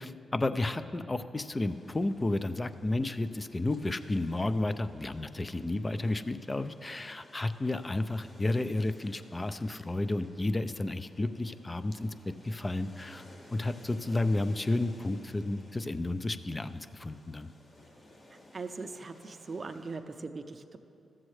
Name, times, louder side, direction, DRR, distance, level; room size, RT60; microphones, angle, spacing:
voice 1, 0.0-13.2 13.5-17.5, left 2 dB, 30° left, 12 dB, 0.4 m, -32 dB
sound 1, 1.6-20.0, left 1 dB, 60° left, 1.9 m, -58 dB
voice 2, 18.5-20.8, right 4 dB, 45° right, 8 dB, 0.5 m, -40 dB
14.0 x 7.4 x 3.2 m, 2.7 s
supercardioid pair, 50°, 0 cm